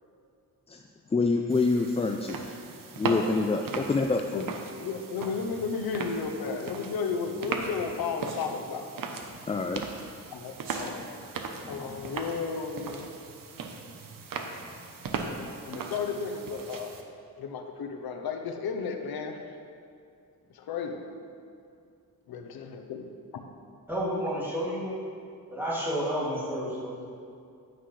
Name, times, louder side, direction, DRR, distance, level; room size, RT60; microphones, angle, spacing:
voice 1, 1.1-2.4 3.0-4.5 9.5-9.8 11.6-12.0, left 3 dB, 20° left, 4 dB, 0.3 m, -27 dB
sound 1, 1.5-17.0, right 4 dB, 65° right, 0.9 m, -38 dB
voice 2, 4.8-8.9 10.3-11.0 11.7-13.1 15.7-17.0 17.4-19.4 20.5-21.0 22.3-23.5, left 5 dB, 90° left, 5 dB, 0.8 m, -33 dB
Sneeze, 8.2-8.5 10.5-10.9, right 4 dB, 85° right, 1.3 m, -43 dB
voice 3, 23.9-25.0 25.5-27.0, equal, 5° right, -7 dB, 2.4 m, -30 dB
10.0 x 9.7 x 3.2 m, 2.5 s
wide cardioid pair, 120°, 36 cm